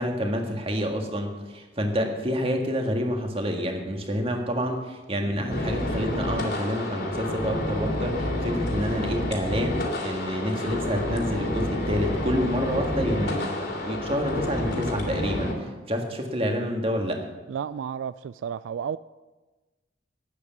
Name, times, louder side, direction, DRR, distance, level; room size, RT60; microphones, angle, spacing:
voice 1, 0.0-17.2, equal, 30° right, 1.8 m, -28 dB
sound 1, 5.5-15.5, left 1 dB, 60° left, 3.0 m, -29 dB
voice 2, 17.5-19.0, right 8 dB, 85° right, 0.3 m, -32 dB
11.5 x 9.6 x 7.4 m
head